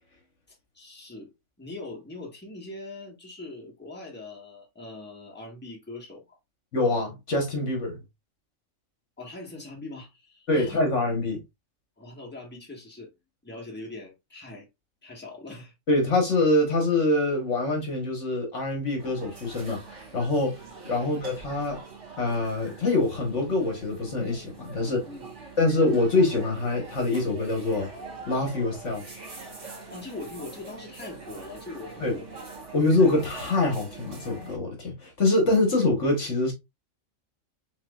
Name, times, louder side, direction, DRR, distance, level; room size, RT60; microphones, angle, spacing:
voice 1, 0.7-1.3 1.6-6.4 9.2-10.8 12.0-13.1 13.4-14.7 15.0-15.7 21.0-21.2 24.8-25.3 29.9-32.3, left 2 dB, 10° left, 1.4 m, -41 dB
voice 2, 6.7-8.0 10.5-11.4 15.9-20.6 20.9-21.8 22.2-25.0 25.6-27.9 28.3-29.0 32.0-32.1 32.7-36.5, left 2 dB, 65° left, 1.6 m, -25 dB
sound 1, 19.0-34.6, right 4 dB, 60° right, 1.9 m, -44 dB
4.6 x 3.8 x 2.4 m
omnidirectional pair, 1.4 m